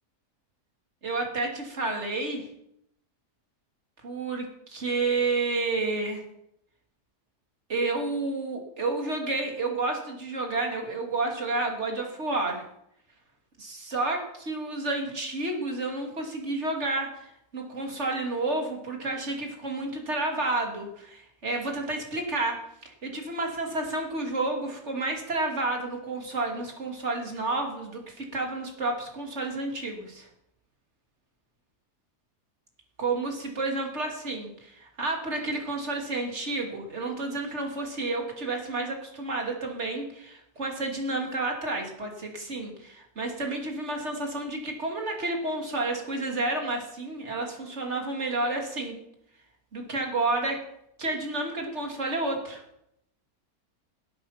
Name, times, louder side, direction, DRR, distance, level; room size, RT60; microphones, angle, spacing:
voice 1, 1.0-2.5 4.0-6.2 7.7-12.6 13.6-22.6 22.8-30.3 33.0-49.0 49.7-50.6 51.0-52.6, right 2 dB, 45° right, 2 dB, 2.9 m, -30 dB
18.5 x 8.7 x 5.8 m, 0.77 s
omnidirectional pair, 1.7 m